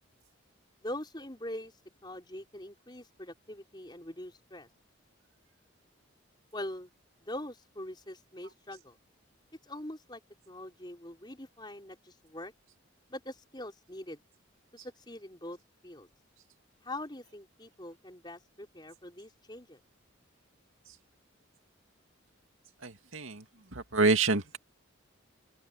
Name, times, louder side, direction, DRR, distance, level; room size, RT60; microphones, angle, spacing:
voice 1, 0.8-1.7 2.0-4.7 6.5-6.9 7.2-9.0 9.7-12.5 13.1-14.2 14.7-15.6 15.8-16.1 16.8-19.8, left 1 dB, 20° left, 4.8 m, -43 dB
voice 2, 22.8-23.4 23.9-24.6, right 3 dB, 80° right, 2.4 m, -26 dB
open air
head